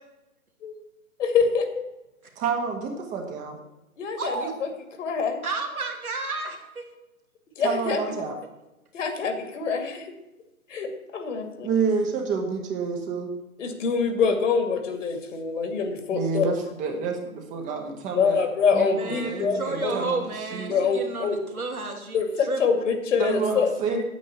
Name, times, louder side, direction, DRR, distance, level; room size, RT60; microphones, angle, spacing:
voice 1, 1.2-1.8 4.0-4.7 5.0-5.4 7.6-8.1 8.9-10.1 10.7-11.7 13.6-16.5 18.1-20.0 20.7-21.4 22.1-24.0, left 5 dB, 60° left, 6 dB, 2.4 m, -25 dB
voice 2, 2.4-3.6 7.6-8.4 11.6-13.3 16.1-18.4 18.7-20.3 20.5-20.8 23.2-24.0, right 5 dB, 15° right, 3 dB, 1.3 m, -29 dB
voice 3, 4.2-4.5 5.4-6.9 18.9-22.6, right 3 dB, 85° right, 2 dB, 2.7 m, -32 dB
9.3 x 9.1 x 7.1 m, 0.98 s
hypercardioid pair, 135°, 43 cm